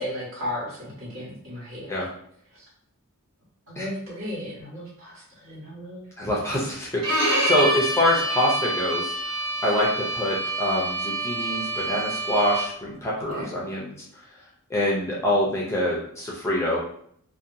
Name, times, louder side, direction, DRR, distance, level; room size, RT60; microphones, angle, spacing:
voice 1, 0.0-2.1 2.5-2.6 3.7-6.0 13.3-13.5, left 1 dB, 60° right, -8 dB, 1.4 m, -35 dB
voice 2, 6.2-9.1 9.6-13.9 14.7-16.8, left 1 dB, 10° left, -5 dB, 0.5 m, -25 dB
Bowed string instrument, 7.0-12.9, right 1 dB, 75° right, 1.3 m, -27 dB
2.7 x 2.2 x 2.6 m, 0.65 s
head